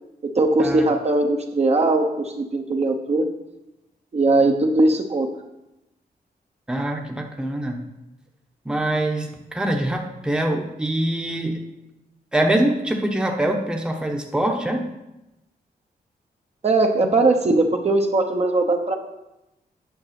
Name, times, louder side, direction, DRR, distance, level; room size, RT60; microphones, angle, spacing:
voice 1, 0.2-3.3 4.1-5.3 16.6-19.0, right 2 dB, 40° right, 3 dB, 1.0 m, -20 dB
voice 2, 6.7-7.8 8.6-11.6 12.3-14.8, right 1 dB, 5° right, 2 dB, 1.0 m, -24 dB
9.5 x 6.0 x 5.9 m, 0.95 s
wide cardioid pair, 115°, 16 cm